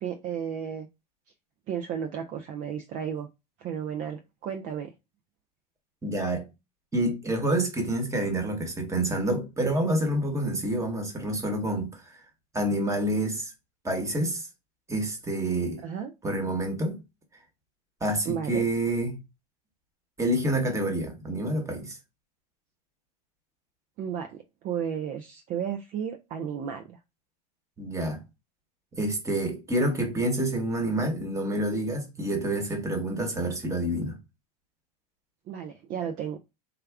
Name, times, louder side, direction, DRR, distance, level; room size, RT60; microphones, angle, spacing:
voice 1, 0.0-0.9 1.7-3.3 3.6-4.9 15.8-16.1 18.3-18.7 24.0-27.0 35.5-36.4, right 8 dB, 40° right, 0.5 m, -33 dB
voice 2, 6.0-6.5 6.9-11.9 12.5-13.5 13.8-14.5 14.9-15.8 16.2-17.0 18.0-19.2 20.2-22.0 27.8-28.2 28.9-34.2, right 1 dB, 15° right, 1.1 m, -28 dB
3.5 x 2.2 x 3.4 m
supercardioid pair, 110°, 21 cm